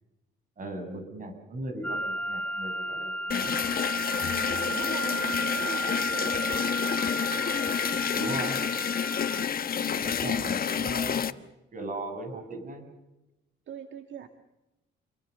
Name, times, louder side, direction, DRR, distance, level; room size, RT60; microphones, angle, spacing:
voice 1, 0.6-3.6 8.1-8.6 10.0-11.4 11.7-12.9, right 2 dB, 40° right, 7 dB, 7.9 m, -37 dB
sound 1, 1.8-9.4, right 1 dB, 5° left, 0.8 m, -33 dB
sound 2, 3.3-11.3, left 7 dB, 50° left, 1.3 m, -29 dB
voice 2, 4.3-6.7 8.3-8.4 9.7-10.4 13.7-14.3, right 9 dB, 70° right, 7 dB, 2.0 m, -42 dB
29.0 x 23.0 x 6.8 m, 0.97 s
cardioid pair, 90°, 20 cm